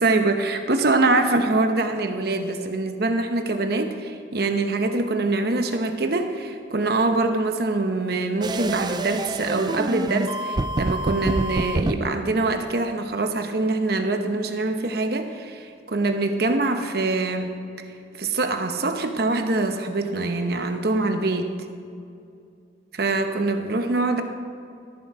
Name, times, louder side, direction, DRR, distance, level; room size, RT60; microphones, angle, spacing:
voice 1, 0.0-17.5 18.2-21.5 22.9-24.2, right 2 dB, 55° right, 6 dB, 0.9 m, -24 dB
sound 1, 8.4-12.0, right 2 dB, 20° right, 0.3 m, -27 dB
13.0 x 7.4 x 4.8 m, 2.4 s
head